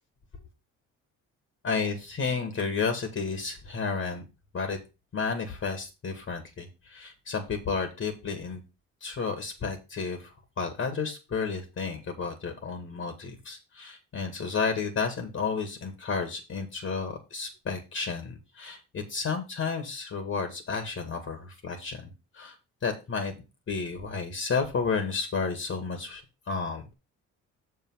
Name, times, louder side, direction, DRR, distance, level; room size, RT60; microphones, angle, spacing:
voice 1, 1.6-4.2 4.5-4.8 5.1-8.6 9.0-23.4 23.7-26.9, left 5 dB, 50° left, 6 dB, 2.2 m, -32 dB
7.0 x 5.7 x 5.7 m, 0.28 s
cardioid pair, 90°, 30 cm